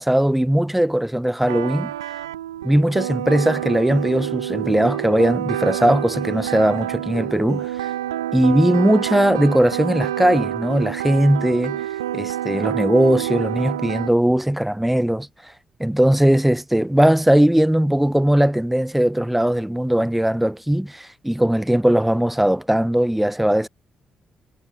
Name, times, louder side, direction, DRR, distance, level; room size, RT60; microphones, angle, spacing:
voice 1, 0.0-1.9 2.6-7.7 8.3-11.8 12.1-15.3 15.8-23.7, right 1 dB, 5° right, 3.4 m, -19 dB
sound 1, 1.5-14.1, right 12 dB, 90° right, 0.9 m, -28 dB
hypercardioid pair, 45°, 2 cm